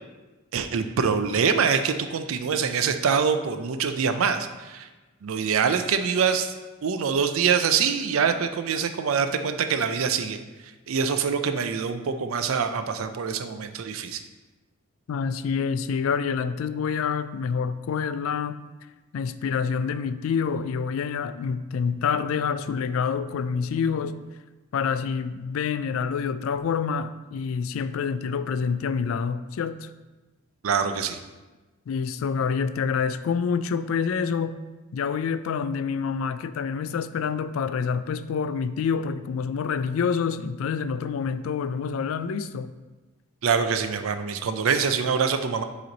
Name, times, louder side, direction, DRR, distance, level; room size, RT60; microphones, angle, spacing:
voice 1, 0.5-4.9 5.2-6.5 6.8-10.4 10.9-14.2 30.6-31.2 43.4-45.6, right 6 dB, 75° right, 8 dB, 0.4 m, -24 dB
voice 2, 15.1-18.6 19.1-24.2 24.7-29.9 31.9-34.6 34.9-42.7, left 6 dB, 75° left, 13 dB, 0.3 m, -27 dB
7.7 x 3.1 x 4.0 m, 1.2 s
head